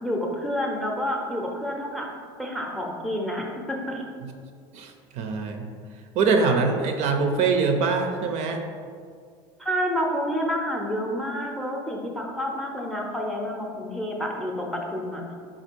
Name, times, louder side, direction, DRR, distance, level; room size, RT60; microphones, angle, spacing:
voice 1, 0.0-2.1 2.4-4.0 9.6-15.3, equal, ahead, 0 dB, 0.6 m, -29 dB
voice 2, 4.7-5.7 6.2-8.6, right 4 dB, 55° right, 4 dB, 0.5 m, -23 dB
4.3 x 2.4 x 4.4 m, 2.1 s
supercardioid pair, 110°, 14 cm